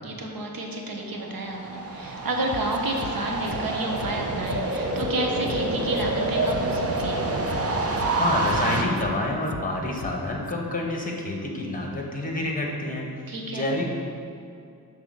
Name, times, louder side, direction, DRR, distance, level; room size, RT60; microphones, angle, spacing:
voice 1, 0.0-7.2 13.3-13.7, right 1 dB, 60° right, 1 dB, 1.1 m, -30 dB
sound 1, 1.2-8.8, right 2 dB, 40° right, 0.8 m, -27 dB
sound 2, 2.5-3.1 3.5-3.6 4.0-4.1 4.5-5.1 5.5-5.6 6.0-6.1 6.5-7.1 7.5-7.6 8.0-8.1 8.5-9.1 9.5-9.6 10.0-10.1 10.5-10.6, left 7 dB, 40° left, 0.4 m, -38 dB
voice 2, 8.2-13.1 13.5-13.8, left 1 dB, 20° left, 0 dB, 1.2 m, -28 dB
6.3 x 4.0 x 6.3 m, 2.4 s
wide cardioid pair, 85°, 38 cm